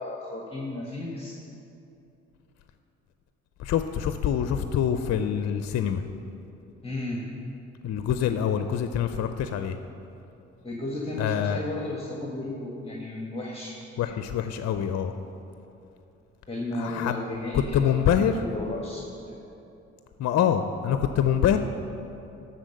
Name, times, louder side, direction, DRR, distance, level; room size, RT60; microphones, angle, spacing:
voice 1, 0.0-1.4 6.8-7.2 10.6-13.7 16.5-19.4, left 2 dB, 20° left, -2 dB, 1.5 m, -34 dB
voice 2, 3.6-6.0 7.8-9.8 11.2-11.6 14.0-15.1 16.7-17.2 17.5-18.4 20.2-21.6, left 9 dB, 55° left, 8 dB, 0.5 m, -25 dB
12.5 x 4.2 x 6.6 m, 2.8 s
supercardioid pair, 55°, 32 cm